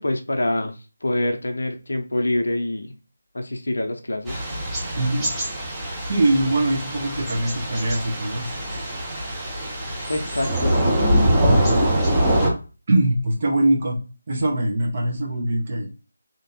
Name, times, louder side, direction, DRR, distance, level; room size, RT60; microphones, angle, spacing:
voice 1, 0.0-2.9 3.3-4.4 10.1-11.0, left 1 dB, 70° left, 0.7 m, -26 dB
Thunder / Rain, 4.3-12.5, right 1 dB, 5° right, 1.0 m, -23 dB
voice 2, 5.0-5.3 6.0-8.6 11.5-11.9 12.9-14.0 14.3-15.9, right 1 dB, 40° right, 1.3 m, -22 dB
3.3 x 2.9 x 2.9 m
figure-of-eight pair, 160°, 0 cm